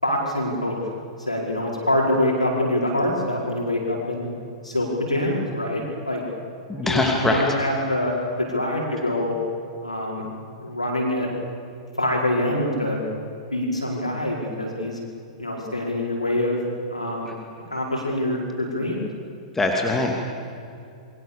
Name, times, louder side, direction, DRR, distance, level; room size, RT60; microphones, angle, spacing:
voice 1, 0.0-0.7 1.2-4.3 4.6-6.2 6.8-9.3 9.8-10.2 10.6-11.3 12.0-13.0 13.5-15.0 15.4-16.6 16.9-17.3 17.7-19.0, left 1 dB, 85° left, -2 dB, 5.0 m, -25 dB
voice 2, 6.7-7.4 19.5-20.3, left 2 dB, 10° left, 0 dB, 2.7 m, -22 dB
29.5 x 23.0 x 7.0 m, 2.5 s
figure-of-eight pair, 100°, 3 cm